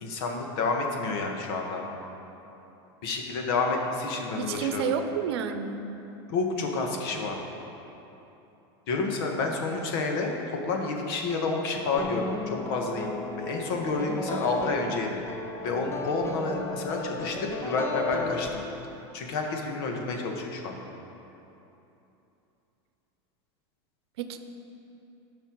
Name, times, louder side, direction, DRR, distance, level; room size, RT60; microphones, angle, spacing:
voice 1, 0.0-1.8 3.0-4.8 6.3-7.4 8.9-10.4 10.6-13.1 13.4-15.2 15.6-18.6 19.1-20.9, left 3 dB, 65° left, 2 dB, 1.5 m, -29 dB
voice 2, 4.4-5.8 24.2-24.4, right 7 dB, 80° right, 8 dB, 0.7 m, -30 dB
sound 1, 12.0-19.1, left 4 dB, 20° left, 0.7 m, -35 dB
14.5 x 5.7 x 4.6 m, 3.0 s
supercardioid pair, 150°, 13 cm